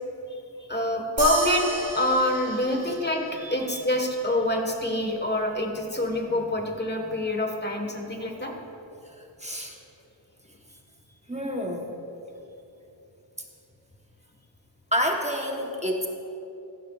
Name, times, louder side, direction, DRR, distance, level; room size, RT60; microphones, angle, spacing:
voice 1, 0.7-8.5, left 1 dB, 20° left, 2 dB, 1.5 m, -26 dB
sound 1, 1.2-3.9, right 2 dB, 90° right, 3.0 m, -34 dB
voice 2, 9.4-9.7 11.3-11.9 14.9-16.1, equal, 15° right, 1 dB, 1.1 m, -28 dB
15.5 x 13.0 x 2.4 m, 2.9 s
wide cardioid pair, 80°, 45 cm